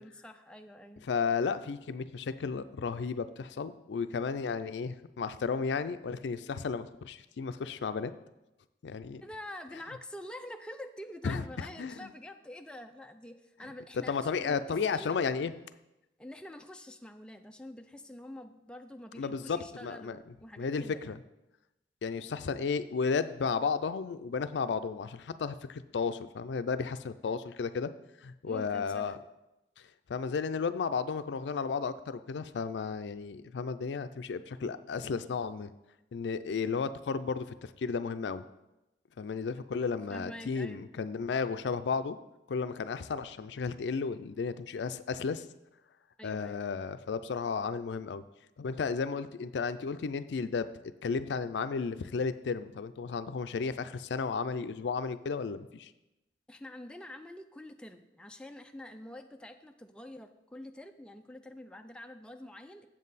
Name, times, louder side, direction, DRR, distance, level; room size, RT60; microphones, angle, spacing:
voice 1, 0.0-1.1 9.2-14.6 14.8-15.2 16.2-21.2 28.5-29.2 40.1-40.9 46.2-46.7 56.5-62.9, left 1 dB, 5° left, 5 dB, 0.4 m, -46 dB
voice 2, 1.1-8.1 8.8-9.2 11.2-12.1 14.1-15.5 19.2-20.2 20.6-21.2 22.0-27.9 28.2-29.2 30.1-35.7 36.1-38.4 39.2-42.2 42.5-45.4 46.2-48.2 48.6-50.7 51.0-55.9, left 5 dB, 85° left, 12 dB, 0.4 m, -33 dB
7.5 x 7.4 x 4.1 m, 0.94 s
head